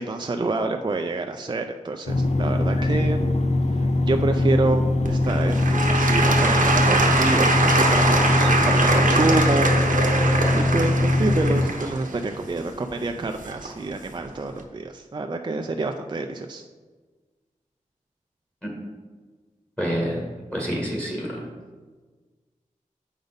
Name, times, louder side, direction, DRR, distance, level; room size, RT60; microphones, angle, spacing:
voice 1, 0.0-3.3 3.7-9.7 10.6-16.6, right 3 dB, 35° right, 5 dB, 0.4 m, -27 dB
sound 1, 2.1-11.7, left 2 dB, 55° left, 0.5 m, -22 dB
Applause / Crowd, 5.0-13.9 14.5-14.6, right 3 dB, 75° right, 0.9 m, -23 dB
sound 2, 5.7-10.4, left 2 dB, 50° right, 0.7 m, -31 dB
voice 2, 19.8-21.4, equal, 10° left, -2 dB, 1.6 m, -28 dB
8.0 x 5.1 x 4.0 m, 1.4 s
wide cardioid pair, 85°, 14 cm